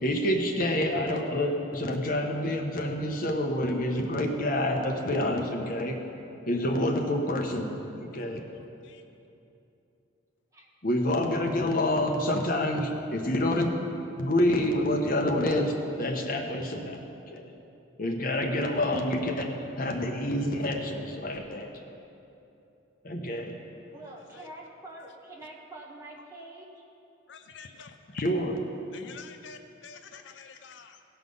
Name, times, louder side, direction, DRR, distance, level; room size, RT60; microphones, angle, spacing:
voice 1, 0.0-6.0 6.5-8.4 10.8-13.7 14.2-17.5 18.0-21.7 23.0-23.5 28.1-28.5, left 1 dB, 45° left, 2 dB, 1.0 m, -28 dB
voice 2, 8.5-9.0 24.0-24.5 25.0-25.1 27.3-28.0 28.9-31.0, left 5 dB, 60° left, 7 dB, 0.5 m, -48 dB
voice 3, 23.9-26.8, right 2 dB, 15° right, -3 dB, 1.3 m, -46 dB
17.0 x 5.8 x 5.4 m, 2.8 s
head